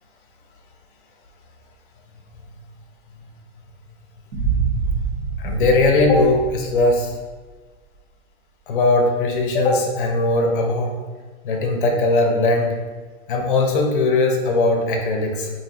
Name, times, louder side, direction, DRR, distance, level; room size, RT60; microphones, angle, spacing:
Boom, 4.3-7.3, right 5 dB, 60° right, 1.2 m, -25 dB
voice 1, 5.4-7.2 8.7-11.0 11.4-12.7 13.3-15.5, left 2 dB, 45° left, 1 dB, 0.7 m, -19 dB
4.0 x 2.8 x 2.8 m, 1.4 s
hypercardioid pair, 170°, 36 cm